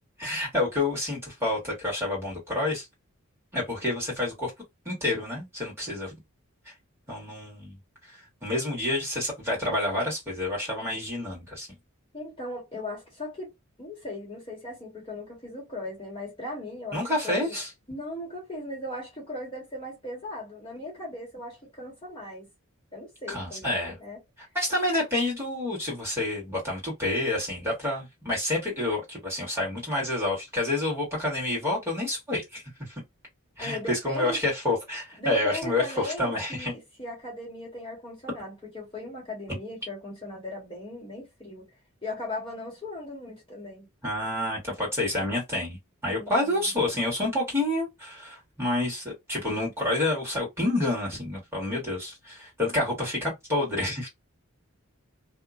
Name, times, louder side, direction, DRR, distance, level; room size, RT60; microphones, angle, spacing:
voice 1, 0.2-2.8 3.5-4.5 4.8-6.1 7.1-7.8 8.4-11.7 16.9-17.7 23.3-23.9 24.5-32.9 33.6-36.7 44.0-54.1, left 2 dB, 10° right, 1.6 m, -28 dB
voice 2, 12.1-13.5 13.8-17.5 17.9-22.5 22.9-24.2 33.6-34.4 35.2-41.7 42.0-43.9 46.2-46.6, left 2 dB, 25° left, 1.3 m, -37 dB
2.8 x 2.4 x 2.4 m
head